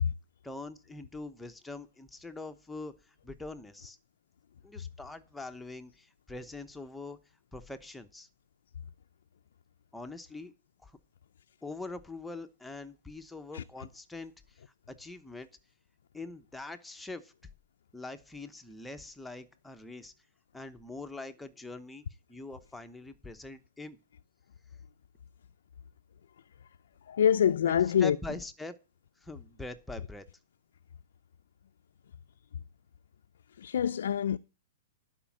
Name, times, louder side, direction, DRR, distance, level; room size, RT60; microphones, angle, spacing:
voice 1, 0.4-4.0 4.6-7.2 7.5-8.3 9.9-10.5 10.8-11.0 11.6-14.6 14.9-15.5 16.1-17.3 17.9-20.1 20.5-22.0 22.3-24.0 27.6-28.8 29.2-30.3, left 2 dB, 5° left, 0.9 m, -43 dB
voice 2, 27.1-28.2 33.6-34.4, left 9 dB, 80° left, 0.4 m, -25 dB
11.5 x 5.1 x 7.4 m
hypercardioid pair, 140°, 0 cm